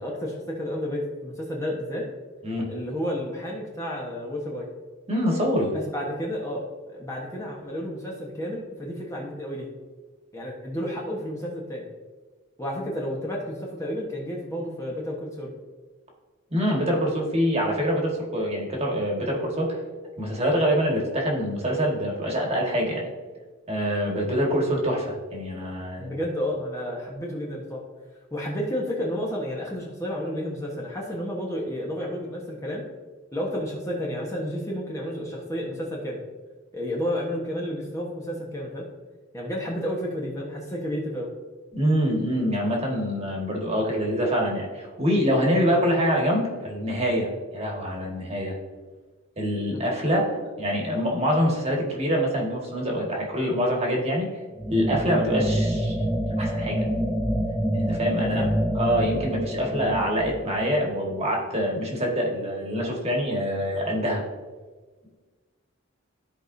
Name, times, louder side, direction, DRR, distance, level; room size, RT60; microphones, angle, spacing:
voice 1, 0.0-2.1 2.7-4.7 5.7-9.7 10.3-11.9 12.6-15.5 26.0-27.8 28.3-32.8 33.3-36.2 36.7-38.9 39.3-41.3 49.7-49.8 58.2-58.5, equal, 15° left, -3 dB, 1.2 m, -31 dB
voice 2, 5.1-5.7 16.5-19.8 20.2-23.1 23.7-26.1 41.7-48.5 49.4-54.3 54.7-55.9 56.4-56.8 57.7-58.5 58.7-64.2, equal, 30° right, -1 dB, 1.7 m, -25 dB
sound 1, 54.6-61.3, equal, 5° right, 0.6 m, -27 dB
14.5 x 4.9 x 2.7 m, 1.4 s
head